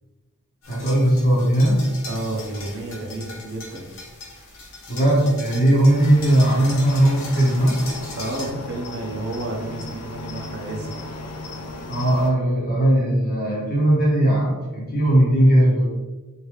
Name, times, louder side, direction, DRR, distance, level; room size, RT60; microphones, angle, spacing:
sound 1, 0.6-8.5, left 3 dB, 60° left, 0.9 m, -40 dB
voice 1, 0.7-1.8 4.9-7.8 11.9-15.9, right 1 dB, 45° left, -6 dB, 1.2 m, -18 dB
voice 2, 2.1-3.9 8.1-10.9, right 1 dB, 50° right, 0 dB, 0.7 m, -31 dB
Cricket, 6.0-12.3, left 2 dB, 90° left, 0.5 m, -35 dB
3.3 x 2.6 x 3.1 m, 1.2 s
head